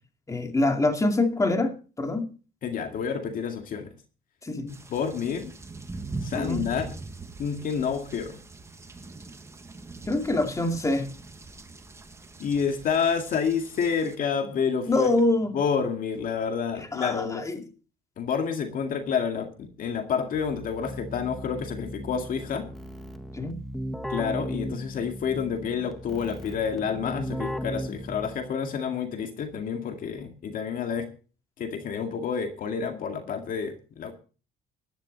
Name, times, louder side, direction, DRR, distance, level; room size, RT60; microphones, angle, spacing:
voice 1, 0.3-2.3 4.4-4.7 6.3-6.7 10.1-11.1 14.9-15.6 16.9-17.6 23.3-23.6, left 2 dB, 20° left, 2.4 m, -25 dB
voice 2, 2.6-3.9 4.9-5.5 6.2-6.9 7.4-8.4 12.4-15.1 15.5-17.5 18.2-22.7 24.1-31.1 31.6-34.1, left 6 dB, 55° left, 2.1 m, -29 dB
sound 1, 4.7-14.2, right 3 dB, 15° right, 1.5 m, -41 dB
Keyboard (musical), 20.3-28.6, equal, ahead, 1.4 m, -37 dB
15.0 x 12.0 x 4.1 m
cardioid pair, 110°, 17 cm